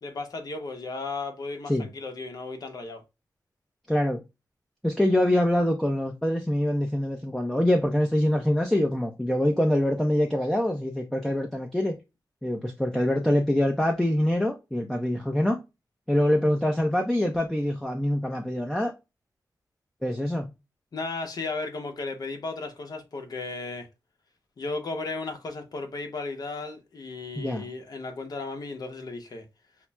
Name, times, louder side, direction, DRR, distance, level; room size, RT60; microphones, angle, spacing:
voice 1, 0.0-3.0 20.9-23.9 24.6-29.4, left 3 dB, 60° left, 0.9 m, -35 dB
voice 2, 3.9-4.2 4.8-11.9 12.4-15.6 16.1-18.9 20.0-20.5 27.4-27.6, left 1 dB, 5° left, 0.6 m, -24 dB
5.7 x 2.1 x 2.2 m
wide cardioid pair, 80°, 7 cm